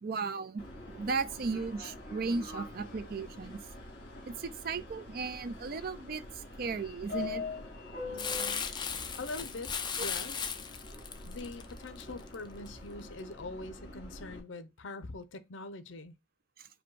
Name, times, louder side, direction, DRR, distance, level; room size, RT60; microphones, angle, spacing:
voice 1, 0.0-3.6 4.3-7.4 10.0-10.1 16.6-16.7, right 4 dB, 50° right, 0.4 m, -36 dB
Subway metro underground, 0.6-14.4, left 3 dB, 55° left, 1.9 m, -45 dB
voice 2, 8.0-8.6 9.2-10.5 11.2-16.1, left 2 dB, 75° left, 0.6 m, -43 dB
Crumpling crinkling, 8.2-12.7 13.2-13.3, left 6 dB, 25° left, 0.4 m, -37 dB
5.0 x 2.2 x 4.5 m
head